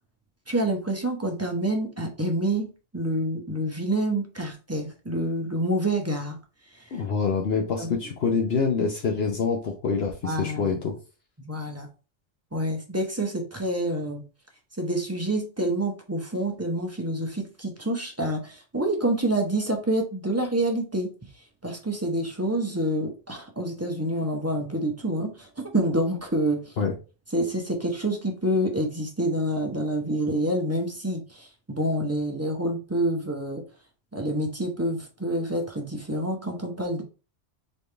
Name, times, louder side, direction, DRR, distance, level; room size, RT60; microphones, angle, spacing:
voice 1, 0.5-6.4 6.7-7.0 7.8-7.9 10.2-10.8 11.4-11.9 12.5-14.2 14.8-21.1 21.6-26.7 27.3-33.6 34.1-37.0, right 1 dB, 15° right, 2 dB, 0.7 m, -27 dB
voice 2, 6.9-10.9 26.8-26.9, left 5 dB, 60° left, 1 dB, 0.9 m, -26 dB
4.1 x 3.5 x 3.3 m, 0.33 s
omnidirectional pair, 1.2 m